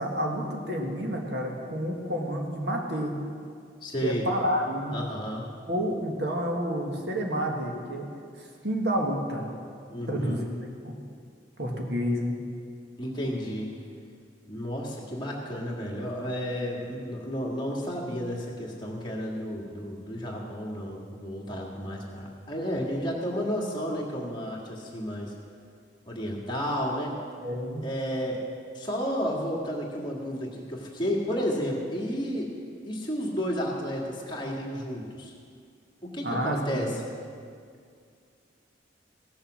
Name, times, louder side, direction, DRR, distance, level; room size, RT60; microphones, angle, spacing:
voice 1, 0.0-3.1 4.0-4.9 5.7-8.1 8.4-9.5 10.1-10.4 10.8-10.9 11.6-12.4 27.4-27.9 36.2-36.9, equal, 60° right, 0 dB, 1.6 m, -29 dB
voice 2, 3.8-4.2 4.9-5.5 9.9-10.4 13.0-13.7 14.5-25.3 26.1-27.1 27.8-28.4 28.7-32.5 32.8-35.3 36.0-37.0, equal, 25° left, -3 dB, 1.8 m, -32 dB
16.5 x 7.2 x 6.3 m, 2.2 s
head